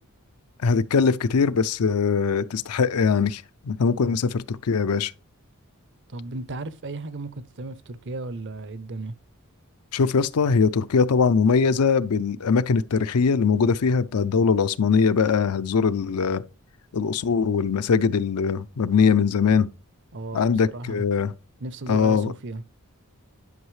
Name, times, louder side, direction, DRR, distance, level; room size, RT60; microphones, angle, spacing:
voice 1, 0.6-5.1 9.9-16.4 16.9-19.7 20.3-21.3 21.9-22.3, left 5 dB, 80° left, 0.5 m, -21 dB
voice 2, 6.1-9.1 20.1-21.0 21.6-22.6, right 2 dB, 55° right, 0.7 m, -35 dB
11.0 x 5.5 x 3.2 m
head